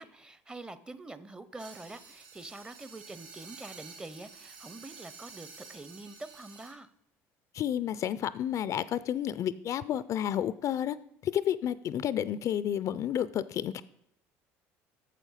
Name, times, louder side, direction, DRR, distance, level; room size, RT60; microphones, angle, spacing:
voice 1, 0.0-6.9, right 2 dB, 15° right, 14 dB, 0.6 m, -45 dB
sound 1, 1.6-6.7, right 5 dB, 75° right, 2.5 m, -50 dB
voice 2, 7.5-11.0 11.2-13.8, left 10 dB, 50° left, 17 dB, 0.4 m, -31 dB
8.2 x 6.9 x 5.6 m, 0.74 s
supercardioid pair, 90°, 7 cm